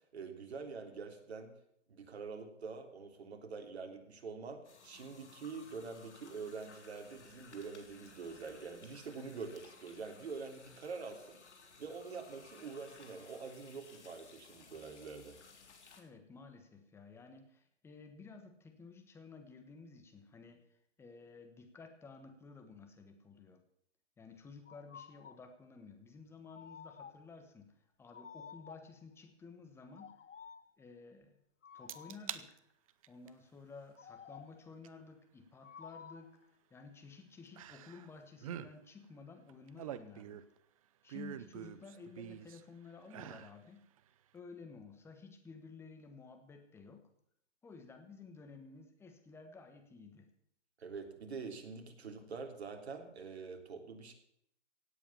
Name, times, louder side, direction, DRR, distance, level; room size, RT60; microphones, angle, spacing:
voice 1, 0.1-1.5 1.9-11.4 11.8-15.4 50.8-54.1, right 4 dB, 60° right, 4 dB, 3.3 m, -45 dB
sound 1, 4.6-16.0, left 5 dB, 65° left, 3.8 m, -59 dB
voice 2, 16.0-23.6 24.2-30.2 30.8-31.4 31.7-32.6 33.1-36.4 36.7-40.4 41.0-43.9 44.3-47.1 47.6-50.3, left 4 dB, 5° left, 6 dB, 1.3 m, -54 dB
sound 2, 24.7-25.5 26.5-27.4 28.1-29.0 29.9-30.8 31.6-32.3 34.0-34.7 35.6-36.4, left 7 dB, 85° left, 1.0 m, -53 dB
sound 3, 31.9-32.4 32.9-33.3 34.8-34.9 37.6-38.1 38.4-38.7 39.5-40.6 41.1-42.6 43.1-43.6 44.0-44.1, right 11 dB, 30° right, 0.7 m, -45 dB
17.0 x 8.4 x 7.1 m, 0.72 s
hypercardioid pair, 145°, 36 cm